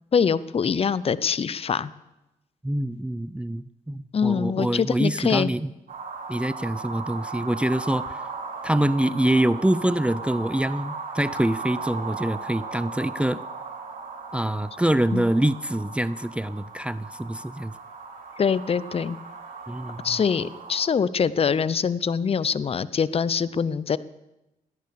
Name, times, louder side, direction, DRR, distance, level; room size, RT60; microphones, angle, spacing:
voice 1, 0.1-1.9 4.1-5.5 15.1-15.2 18.4-19.2 20.0-24.0, left 6 dB, 35° left, 18 dB, 0.7 m, -24 dB
voice 2, 2.6-5.7 6.3-8.2 8.6-13.4 14.3-17.7 19.7-20.2, right 1 dB, 5° right, 17 dB, 0.6 m, -25 dB
sound 1, 5.9-20.9, right 4 dB, 60° right, 4.3 m, -37 dB
16.5 x 10.5 x 6.9 m, 0.96 s
supercardioid pair, 55°, 16 cm